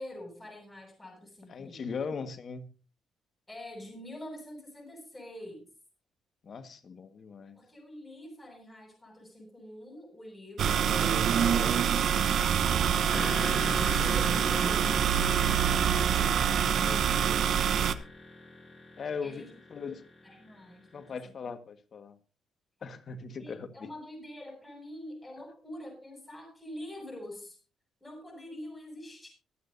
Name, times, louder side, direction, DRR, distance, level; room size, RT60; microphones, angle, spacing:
voice 1, 0.0-1.9 3.5-5.7 7.5-16.6 19.2-19.5 19.9-21.5 23.4-27.6 28.0-29.3, left 1 dB, 15° left, 2 dB, 7.8 m, -46 dB
voice 2, 1.5-2.7 6.4-7.6 11.5-11.8 14.6-14.7 16.6-17.5 19.0-19.4 19.7-20.0 20.9-22.2 22.8-23.9, left 5 dB, 50° left, 9 dB, 1.6 m, -39 dB
sound 1, 10.6-17.9, right 8 dB, 65° right, 0.9 m, -25 dB
sound 2, 13.1-20.9, left 2 dB, 30° left, 6.4 m, -41 dB
24.0 x 9.0 x 2.7 m, 0.34 s
cardioid pair, 90°, 0 cm